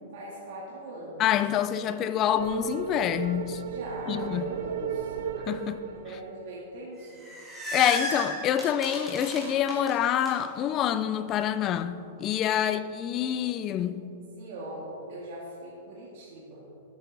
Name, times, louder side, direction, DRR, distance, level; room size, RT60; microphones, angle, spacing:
voice 1, 0.1-1.3 3.6-5.2 5.8-7.2 12.6-12.8 14.4-16.6, right 1 dB, 50° right, 1.9 m, -41 dB
voice 2, 1.2-3.6 4.1-4.5 5.5-5.9 7.7-14.0, left 10 dB, 25° left, 0.4 m, -27 dB
sound 1, 2.4-6.8, right 7 dB, 70° right, 0.5 m, -35 dB
sound 2, 7.0-10.3, equal, 5° right, 2.0 m, -35 dB
13.5 x 8.1 x 4.0 m
supercardioid pair, 170°, 0 cm